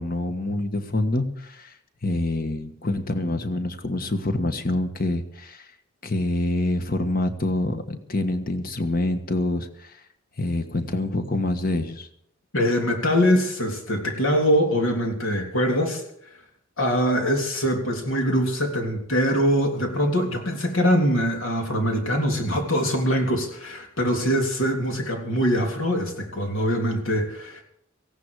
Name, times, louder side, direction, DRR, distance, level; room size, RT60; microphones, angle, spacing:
voice 1, 0.0-1.7 2.0-5.7 6.0-10.0 10.4-12.1, left 1 dB, 45° left, 8 dB, 1.5 m, -26 dB
voice 2, 12.5-16.0 16.8-27.6, equal, 75° left, 2 dB, 3.5 m, -23 dB
17.5 x 16.0 x 4.9 m, 0.72 s
head